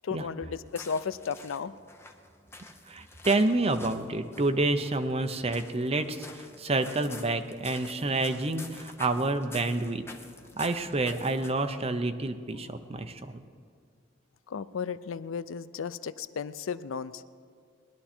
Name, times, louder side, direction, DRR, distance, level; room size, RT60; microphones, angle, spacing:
voice 1, 0.0-1.7 14.5-17.2, left 6 dB, 85° left, 15 dB, 0.5 m, -34 dB
sound 1, 0.7-11.8, left 2 dB, 10° left, 0.8 m, -49 dB
voice 2, 2.9-10.1 10.6-13.4, right 2 dB, 30° right, 8 dB, 0.7 m, -28 dB
20.0 x 11.0 x 4.4 m, 2.2 s
head